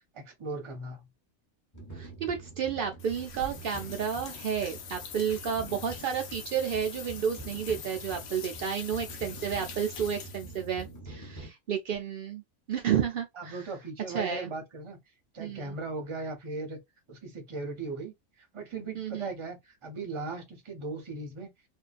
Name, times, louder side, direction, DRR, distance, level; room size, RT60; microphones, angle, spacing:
voice 1, 0.1-1.0 13.4-15.0 15.3-16.8 17.1-21.5, right 3 dB, 35° right, 0.5 m, -38 dB
sound 1, 1.7-11.5, right 3 dB, 20° left, 0.6 m, -46 dB
voice 2, 1.9-12.4 12.7-13.6 14.1-14.5 15.4-15.8 19.0-19.3, right 8 dB, 85° right, 0.4 m, -31 dB
sound 2, 3.0-10.9, left 7 dB, 65° left, 0.7 m, -44 dB
2.6 x 2.3 x 2.4 m
omnidirectional pair, 1.4 m